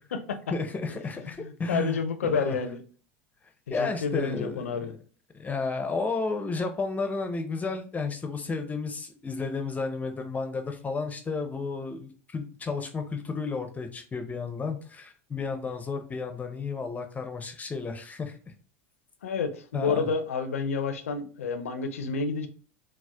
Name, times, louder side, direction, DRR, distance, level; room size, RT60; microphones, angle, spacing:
voice 1, 0.5-2.0 2.3-2.6 3.7-4.9 5.3-18.4 19.7-20.1, left 4 dB, 20° left, 0.5 m, -32 dB
voice 2, 1.2-2.8 3.8-4.9 19.2-22.5, left 5 dB, 80° left, 0.4 m, -29 dB
4.0 x 2.1 x 2.2 m
hypercardioid pair, 85°, 7 cm